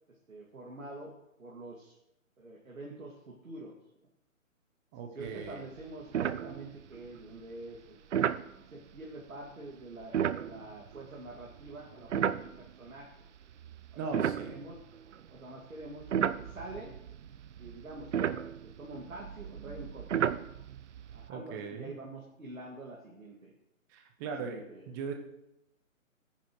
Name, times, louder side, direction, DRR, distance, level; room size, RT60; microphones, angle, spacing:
voice 1, 0.1-1.1 1.4-1.9 2.4-3.7 4.9-8.0 8.5-13.1 13.9-14.8 15.3-16.9 17.6-20.4 21.1-23.5 24.2-24.9, right 2 dB, 80° right, -2 dB, 2.3 m, -46 dB
voice 2, 4.9-5.6 14.0-14.5 21.3-21.9 23.9-25.1, right 5 dB, 15° right, 4 dB, 0.8 m, -39 dB
sound 1, 5.3-5.5 5.8-5.9 6.1-7.0 8.1-8.5 10.0-12.9 13.5-15.3 15.8-21.3, right 8 dB, 60° right, 0.6 m, -33 dB
17.0 x 10.0 x 3.1 m, 0.88 s
figure-of-eight pair, 140°, 41 cm